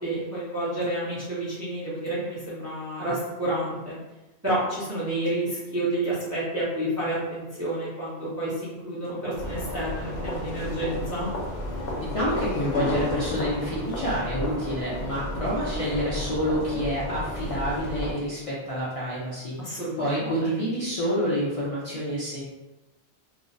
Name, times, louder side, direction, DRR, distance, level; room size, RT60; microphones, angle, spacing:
voice 1, 0.0-4.0 4.4-11.3 19.6-20.5, right 1 dB, 20° right, -8 dB, 0.4 m, -30 dB
sound 1, 9.3-18.1, left 1 dB, 70° left, 0.8 m, -32 dB
voice 2, 12.0-22.4, equal, 50° left, -8 dB, 0.4 m, -28 dB
2.5 x 2.0 x 2.5 m, 1.0 s
omnidirectional pair, 1.2 m